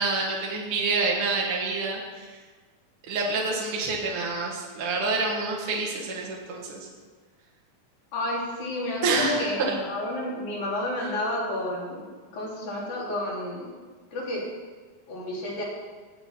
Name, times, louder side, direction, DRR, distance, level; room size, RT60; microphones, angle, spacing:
voice 1, 0.0-2.3 3.1-6.8 9.0-9.7, right 3 dB, 50° right, -2 dB, 1.7 m, -27 dB
voice 2, 8.1-12.1 12.3-13.7 14.1-14.4 15.1-15.6, left 1 dB, 55° left, -4 dB, 4.0 m, -30 dB
18.0 x 7.8 x 4.3 m, 1.4 s
omnidirectional pair, 4.4 m